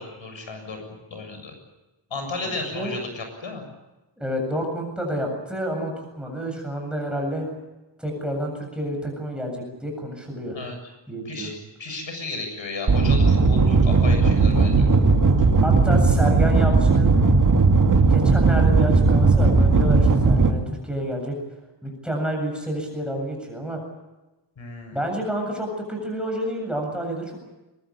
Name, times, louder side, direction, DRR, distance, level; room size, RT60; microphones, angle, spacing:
voice 1, 0.0-1.5 2.1-3.6 10.5-10.8 11.3-11.5 11.8-14.9 24.6-25.0, left 3 dB, 90° left, 5 dB, 7.5 m, -33 dB
voice 2, 2.4-2.9 4.2-7.5 8.0-10.6 11.1-11.6 15.6-17.1 17.9-21.3 21.8-23.8 24.9-27.4, right 1 dB, ahead, 1 dB, 7.6 m, -29 dB
sound 1, 12.9-20.5, right 3 dB, 45° right, 2.4 m, -17 dB
23.5 x 22.0 x 8.7 m, 1.0 s
wide cardioid pair, 175°, 45 cm